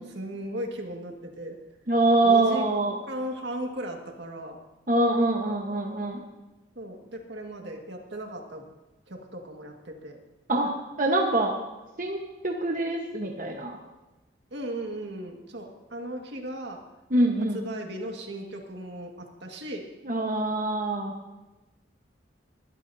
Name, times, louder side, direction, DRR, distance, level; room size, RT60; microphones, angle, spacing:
voice 1, 0.0-1.6 2.2-2.6 3.1-4.6 6.8-8.6 9.1-10.2 14.5-16.8 17.5-19.9, right 1 dB, 75° right, 2 dB, 1.9 m, -36 dB
voice 2, 1.9-3.0 4.9-6.2 10.5-11.5 12.0-12.2 12.4-13.8 17.1-17.6 20.1-21.1, right 2 dB, 45° right, 0 dB, 1.2 m, -24 dB
21.0 x 12.5 x 2.8 m, 1.1 s
head